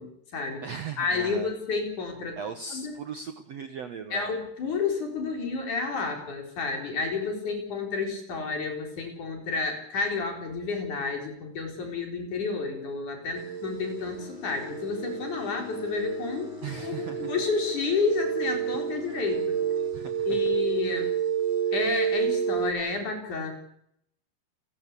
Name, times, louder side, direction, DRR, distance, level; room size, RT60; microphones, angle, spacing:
voice 1, 0.0-0.6 1.0-2.4 2.7-3.0 4.1-16.5 16.8-19.6 20.3-21.1 21.7-23.5, left 4 dB, 45° left, 3 dB, 5.8 m, -30 dB
voice 2, 0.6-1.5 2.4-4.3 16.6-17.3 19.9-20.4, right 6 dB, 80° right, 9 dB, 1.4 m, -38 dB
sound 1, 13.4-22.7, right 9 dB, 40° right, 3.5 m, -30 dB
Bowed string instrument, 13.9-20.6, left 12 dB, 65° left, 3.4 m, -45 dB
29.0 x 13.5 x 8.5 m, 0.72 s
omnidirectional pair, 5.2 m